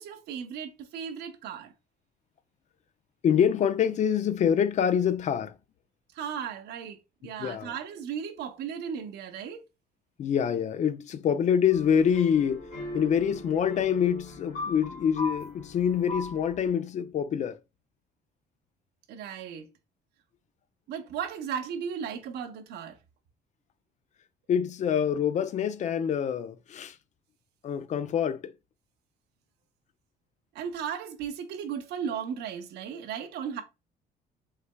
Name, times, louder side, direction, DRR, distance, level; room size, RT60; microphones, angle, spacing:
voice 1, 0.0-1.7 6.1-9.7 19.1-19.7 20.9-23.0 30.5-33.6, right 7 dB, 75° right, 0.8 m, -36 dB
voice 2, 3.2-5.5 7.4-7.7 10.2-12.7 12.9-17.6 24.5-27.0 27.6-28.5, left 8 dB, 45° left, 0.4 m, -26 dB
sound 1, 11.7-16.7, left 2 dB, 60° left, 2.2 m, -39 dB
5.6 x 3.3 x 2.2 m
cardioid pair, 110°, 17 cm